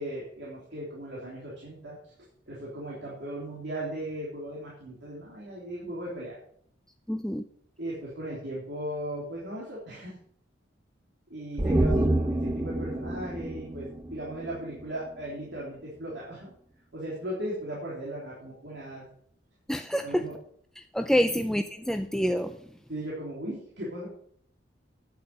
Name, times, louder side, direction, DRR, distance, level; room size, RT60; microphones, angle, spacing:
voice 1, 0.0-2.0 2.5-6.4 7.8-10.1 11.3-16.5 16.9-19.1 20.0-20.4 21.3-21.4 22.9-24.1, right 1 dB, 65° right, -6 dB, 3.5 m, -37 dB
voice 2, 7.1-7.4 19.7-20.3 20.9-22.6, equal, 5° left, 7 dB, 0.4 m, -27 dB
sound 1, 11.6-15.0 15.3-15.4, right 1 dB, 15° right, 0.8 m, -28 dB
9.9 x 8.0 x 6.7 m, 0.64 s
head